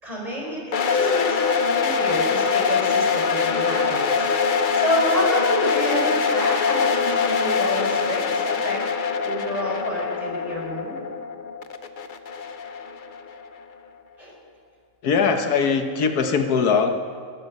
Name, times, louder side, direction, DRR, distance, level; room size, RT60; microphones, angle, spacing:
voice 1, 0.0-4.0 4.7-8.8 9.2-11.0 14.2-14.3, equal, 25° right, -3 dB, 4.9 m, -29 dB
sound 1, 0.7-13.6, left 5 dB, 45° left, 0.7 m, -23 dB
voice 2, 15.0-16.9, left 5 dB, 85° left, 6 dB, 1.6 m, -21 dB
21.0 x 12.5 x 5.4 m, 2.1 s
omnidirectional pair, 1.6 m